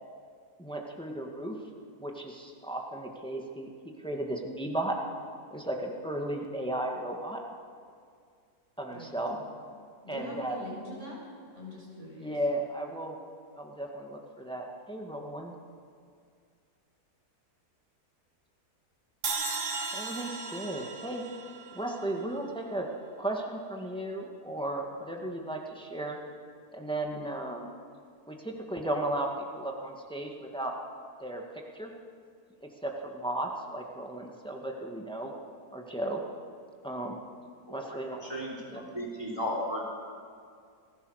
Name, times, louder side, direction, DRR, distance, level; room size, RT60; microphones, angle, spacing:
voice 1, 0.6-1.6 2.0-3.7 4.0-4.9 5.5-7.4 8.8-9.4 10.1-10.6 12.2-13.2 13.6-15.5 19.9-21.2 21.7-22.9 23.2-26.2 26.7-27.7 28.3-29.3 29.5-30.7 31.2-31.4 31.7-31.9 32.6-35.3 35.7-36.2 36.8-37.2 37.7-38.4 38.7-38.8, right 1 dB, 5° left, 1 dB, 2.0 m, -35 dB
voice 2, 8.9-9.5 10.0-11.2 11.5-12.4, left 1 dB, 45° right, -2 dB, 6.1 m, -43 dB
sound 1, 19.2-22.5, right 4 dB, 80° right, 2.2 m, -36 dB
voice 3, 38.3-39.8, equal, 15° right, -4 dB, 3.7 m, -35 dB
27.5 x 15.5 x 6.6 m, 2.2 s
omnidirectional pair, 1.7 m